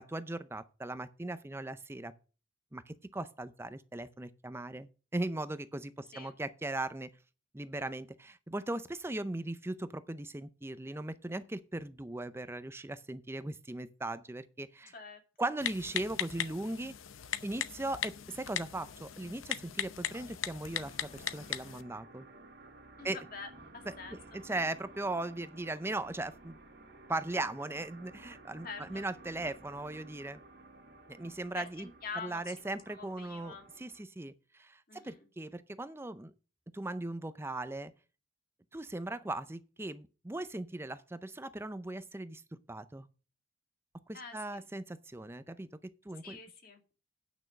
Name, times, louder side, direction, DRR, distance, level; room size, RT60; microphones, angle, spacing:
voice 1, 0.0-2.1 2.7-7.1 7.5-14.9 15.4-16.9 17.4-22.3 23.0-23.2 23.9-26.6 27.1-30.4 31.1-31.9 32.2-36.3 36.7-37.9 38.7-42.4 42.7-43.1 44.1-46.4, right 2 dB, 10° right, 0.5 m, -38 dB
Typing, 15.6-21.8, left 10 dB, 90° left, 0.7 m, -39 dB
sound 1, 20.7-34.0, right 2 dB, 60° right, 2.3 m, -55 dB
voice 2, 23.0-24.2 28.6-29.0 31.5-32.5 32.9-33.7 34.9-35.3 44.1-44.6 46.2-46.8, left 4 dB, 50° left, 2.1 m, -45 dB
9.2 x 6.1 x 6.2 m
head